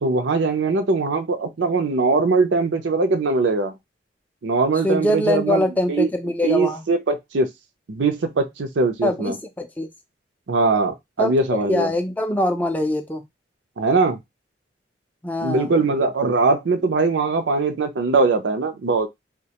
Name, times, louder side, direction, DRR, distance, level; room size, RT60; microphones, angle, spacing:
voice 1, 0.0-3.7 4.4-6.1 6.4-7.5 7.9-9.3 10.5-11.9 13.8-14.2 15.4-19.1, right 3 dB, 85° right, 0.5 m, -21 dB
voice 2, 4.8-6.8 9.0-9.9 11.2-11.3 11.7-13.2 15.2-15.7, left 1 dB, 10° left, 0.4 m, -23 dB
2.4 x 2.2 x 2.8 m
head